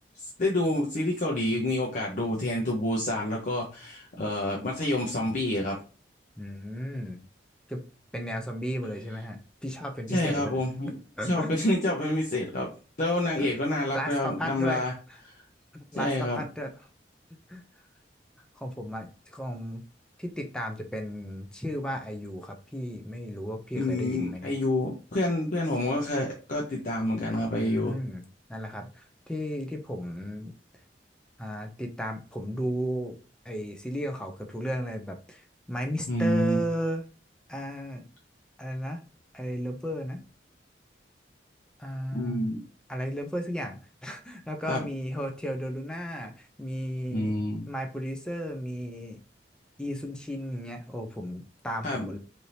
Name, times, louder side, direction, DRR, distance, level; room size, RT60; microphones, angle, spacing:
voice 1, 0.2-5.8 10.1-10.9 11.3-12.7 13.0-14.9 15.9-16.4 23.8-28.0 36.1-36.6 42.1-42.6 44.7-44.8 47.1-47.7 51.8-52.1, left 1 dB, 45° left, -2 dB, 0.6 m, -28 dB
voice 2, 6.4-7.2 7.7-7.8 8.1-10.6 11.2-11.5 13.4-13.5 13.9-14.9 15.7-16.9 17.5-17.6 18.6-19.8 20.2-24.5 27.6-30.5 31.4-33.2 33.4-37.0 37.5-38.0 38.6-39.0 39.3-40.2 41.8-42.6 42.9-47.3 47.7-49.2 49.8-52.2, equal, 5° left, 3 dB, 0.4 m, -34 dB
3.3 x 2.6 x 2.7 m, 0.35 s
head